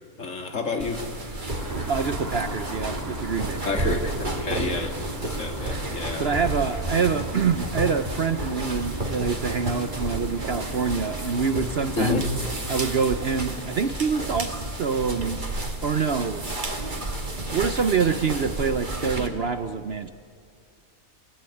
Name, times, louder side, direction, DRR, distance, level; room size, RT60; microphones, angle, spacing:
voice 1, 0.2-1.0 3.7-5.0 5.2-6.3 12.0-12.2, left 3 dB, 55° left, 4 dB, 2.4 m, -29 dB
sound 1, 0.8-19.3, right 2 dB, 30° right, 2.3 m, -32 dB
sound 2, 1.5-13.4, equal, 10° right, 1.9 m, -37 dB
voice 2, 1.9-3.8 4.1-4.9 6.2-12.2 12.7-15.4 15.8-16.5 17.5-20.1, right 5 dB, 50° right, 10 dB, 0.9 m, -26 dB
29.0 x 16.5 x 9.8 m, 2.3 s
omnidirectional pair, 1.6 m